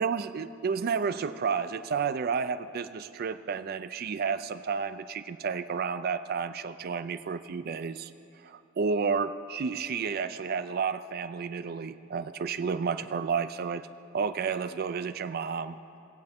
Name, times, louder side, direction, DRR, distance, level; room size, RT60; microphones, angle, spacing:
voice 1, 0.0-8.1 8.4-13.9 14.1-15.8, right 5 dB, 45° right, 12 dB, 0.3 m, -31 dB
18.5 x 7.8 x 3.5 m, 2.7 s
head